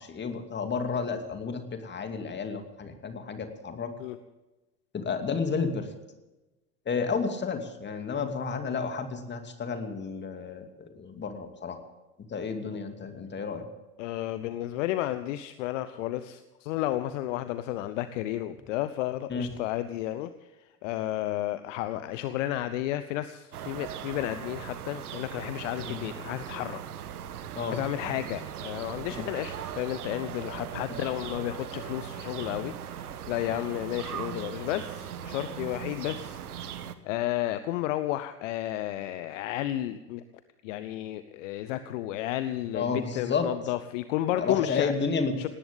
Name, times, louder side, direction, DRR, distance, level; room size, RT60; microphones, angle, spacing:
voice 1, 0.0-3.9 4.9-5.9 6.9-11.8 12.3-13.6 19.3-19.5 25.8-26.0 27.6-27.8 42.7-43.5 44.4-45.5, left 5 dB, 20° left, 6 dB, 2.6 m, -31 dB
voice 2, 14.0-26.8 27.7-40.2 40.6-44.9 45.4-45.5, left 14 dB, 50° left, 13 dB, 0.9 m, -32 dB
sound 1, 23.5-36.9, right 9 dB, 65° right, 1.4 m, -39 dB
18.5 x 18.0 x 3.7 m, 1.1 s
figure-of-eight pair, 75°, 48 cm